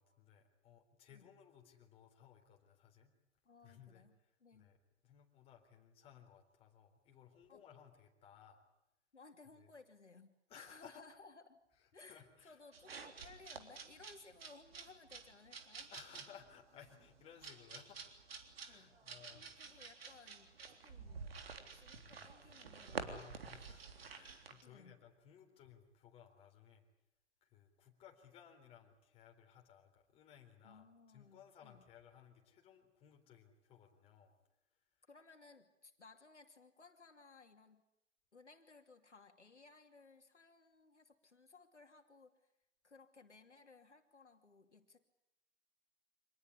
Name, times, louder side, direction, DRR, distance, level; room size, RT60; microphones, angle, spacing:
voice 1, 0.0-3.1 3.6-8.6 9.5-9.7 10.5-11.1 11.8-12.6 15.9-18.0 18.5-19.7 21.9-22.3 22.9-26.8 27.4-34.4 34.7-35.0, left 8 dB, 15° left, 2 dB, 3.8 m, -61 dB
voice 2, 3.4-4.1 4.4-4.7 7.5-7.6 9.1-11.6 11.9-15.9 18.7-19.0 19.6-21.3 21.7-23.1 24.6-25.0 30.6-31.8 35.1-37.8 38.3-42.5 42.8-45.0, left 4 dB, 75° left, 6 dB, 2.8 m, -61 dB
sound 1, 12.7-24.6, right 5 dB, 55° right, 3.6 m, -50 dB
26.0 x 19.5 x 9.9 m, 0.84 s
figure-of-eight pair, 125°, 35 cm